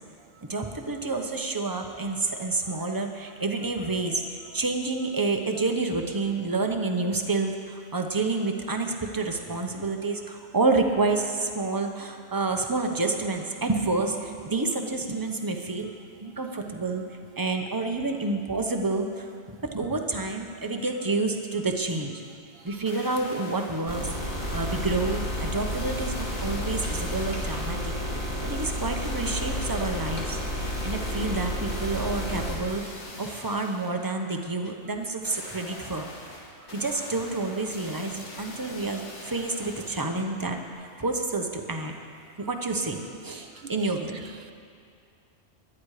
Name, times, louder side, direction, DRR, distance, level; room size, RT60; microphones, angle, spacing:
voice 1, 0.5-15.9 16.2-17.0 17.4-19.3 19.6-22.1 22.6-27.9 28.4-36.1 36.7-41.9 42.4-44.3, right 3 dB, 20° right, 3 dB, 1.0 m, -29 dB
sound 1, 22.7-24.0 24.4-28.0 29.0-34.0 35.2-40.2 40.7-40.8, left 2 dB, 85° left, 2.0 m, -43 dB
sound 2, 23.9-32.6, equal, 40° left, 2.5 m, -31 dB
voice 2, 43.6-44.5, right 6 dB, 65° right, 9 dB, 0.8 m, -47 dB
20.5 x 12.0 x 5.0 m, 2.3 s
omnidirectional pair, 1.2 m